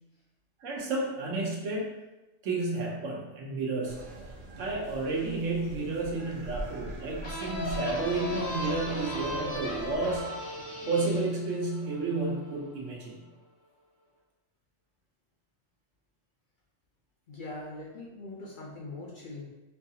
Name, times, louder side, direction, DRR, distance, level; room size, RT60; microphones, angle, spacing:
voice 1, 0.6-1.9 2.4-4.0 4.6-10.3 10.9-13.2, right 3 dB, 80° right, -2 dB, 1.1 m, -31 dB
sound 1, 3.8-10.2, right 2 dB, 60° right, 0.5 m, -43 dB
sound 2, 7.2-12.7, left 1 dB, 80° left, 1.3 m, -36 dB
voice 2, 17.3-19.5, left 2 dB, 60° left, -4 dB, 0.6 m, -42 dB
4.4 x 2.3 x 2.7 m, 1.1 s
omnidirectional pair, 1.3 m